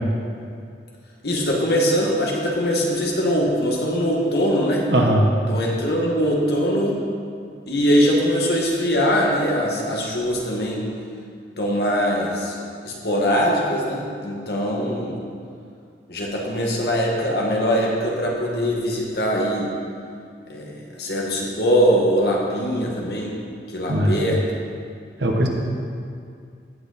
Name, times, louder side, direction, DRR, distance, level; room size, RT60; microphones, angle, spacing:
voice 1, 1.2-4.8 5.5-7.0 7.7-10.9 11.6-12.6 12.8-15.2 16.1-19.7 20.5-23.4 23.7-24.4, equal, 60° left, -2 dB, 1.8 m, -22 dB
voice 2, 4.9-5.3 23.9-24.2 25.2-25.5, right 1 dB, 75° right, 1 dB, 1.3 m, -19 dB
16.0 x 6.2 x 4.3 m, 2.3 s
head